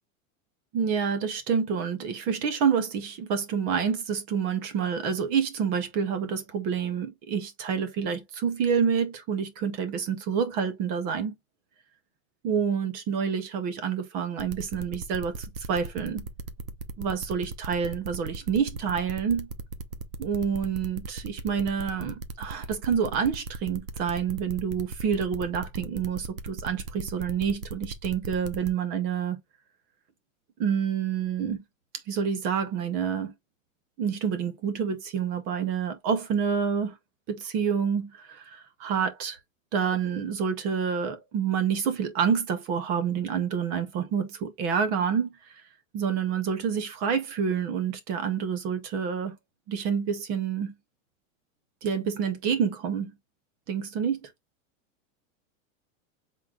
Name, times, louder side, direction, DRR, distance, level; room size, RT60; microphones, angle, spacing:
voice 1, 0.7-11.4 12.4-16.2 17.0-19.5 20.2-29.4 30.6-31.6 32.1-33.3 34.0-36.9 37.3-39.4 39.7-45.3 45.9-49.3 49.7-50.7 51.8-53.1 53.7-54.3, right 7 dB, 25° right, 0.5 m, -28 dB
sound 1, 14.4-28.7, right 4 dB, 70° right, 1.0 m, -37 dB
5.9 x 3.7 x 2.3 m
supercardioid pair, 175°, 40 cm